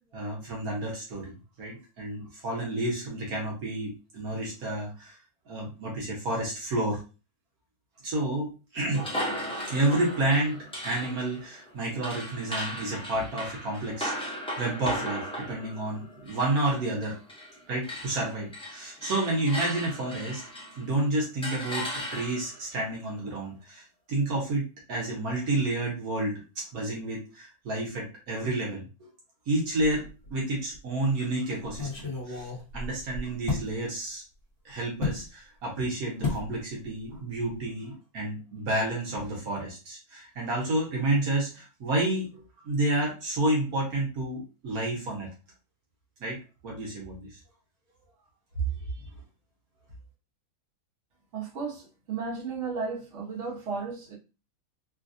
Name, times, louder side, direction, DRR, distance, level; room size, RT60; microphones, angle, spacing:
voice 1, 0.1-1.3 1.6-5.2 5.5-7.0 8.0-9.1 9.6-17.2 17.7-20.4 20.8-29.1 29.5-32.5 32.7-34.2 34.6-45.3 46.2-46.4 46.6-47.4 49.0-49.1, right 2 dB, 75° right, -3 dB, 1.4 m, -30 dB
sound 1, 8.9-17.6 17.8-20.9 21.4-22.6, equal, 5° left, 0.4 m, -37 dB
sound 2, 29.8-30.4 30.7-30.8 31.7-33.7 35.0-35.2 36.2-36.5 36.8-37.2 37.4-37.6, left 3 dB, 40° left, 1.3 m, -33 dB
voice 2, 51.3-54.1, right 4 dB, 55° right, -5 dB, 1.4 m, -34 dB
3.2 x 2.4 x 2.5 m, 0.32 s
omnidirectional pair, 1.6 m